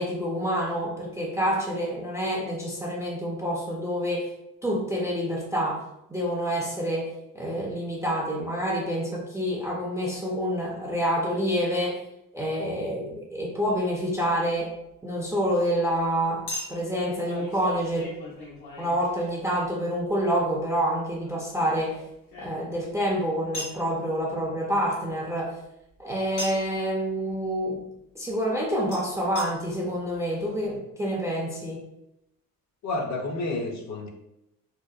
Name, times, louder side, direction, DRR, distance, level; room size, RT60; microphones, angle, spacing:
voice 1, 0.0-4.3 4.6-5.8 6.1-7.1 7.3-12.0 12.3-14.7 15.0-16.4 16.7-18.1 18.8-22.0 22.4-25.5 26.0-27.8 28.2-31.8, equal, 10° right, -3 dB, 0.3 m, -27 dB
Chink clink, 13.7-13.8 16.5-19.7 21.2-22.9 23.5-23.8 26.4-26.8 28.9-29.0 29.4-29.5 30.1-30.2 30.4-30.5, left 1 dB, 85° left, 1.0 m, -39 dB
voice 2, 32.8-34.1, left 2 dB, 50° left, 2 dB, 0.5 m, -30 dB
2.7 x 2.0 x 2.3 m, 0.83 s
cardioid pair, 110°, 36 cm